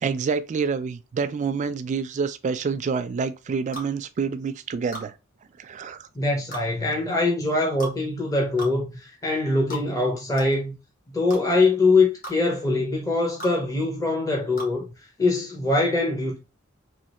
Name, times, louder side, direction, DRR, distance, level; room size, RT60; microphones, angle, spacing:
voice 1, 0.0-5.1 5.6-6.1 15.2-15.3, right 5 dB, 35° right, 0.3 m, -27 dB
tongue click, 3.7-3.9 4.9-5.1 6.5-6.7 7.8-8.0 8.6-8.7 9.7-9.9 10.4-10.5 11.3-11.4 12.2-12.4 13.4-13.6 14.6-14.7, equal, 45° left, 1.2 m, -35 dB
voice 2, 6.2-10.8 11.1-14.9 15.2-16.4, left 2 dB, 15° left, 0.6 m, -23 dB
3.2 x 2.8 x 2.9 m
head